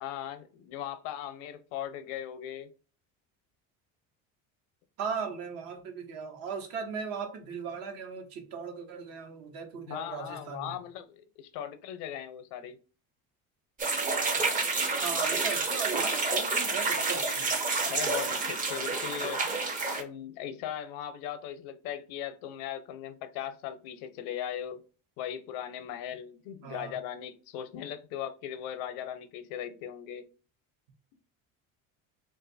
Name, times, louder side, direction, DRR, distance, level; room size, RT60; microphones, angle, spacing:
voice 1, 0.0-2.7 9.9-12.8 17.9-19.4 20.0-24.8 25.2-30.2, left 10 dB, 80° left, 0.6 m, -38 dB
voice 2, 5.0-10.8 15.0-17.5 26.6-27.0, right 6 dB, 70° right, 1.0 m, -37 dB
sound 1, 13.8-20.0, right 3 dB, 25° right, 0.5 m, -29 dB
2.6 x 2.4 x 4.0 m
cardioid pair, 130°, 36 cm